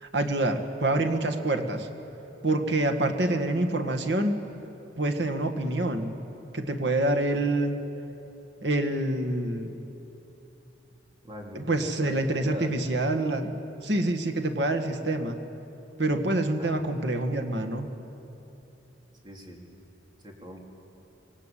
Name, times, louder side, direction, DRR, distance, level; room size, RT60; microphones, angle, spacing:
voice 1, 0.0-1.9 2.4-4.4 5.0-6.1 6.5-7.8 8.6-9.8 11.6-13.5 13.8-15.4 16.0-17.9, right 2 dB, 70° right, 5 dB, 1.8 m, -26 dB
voice 2, 11.2-12.8 16.6-16.8 19.2-19.7 20.2-20.6, equal, 25° right, 1 dB, 2.9 m, -42 dB
26.0 x 19.5 x 8.4 m, 3.0 s
head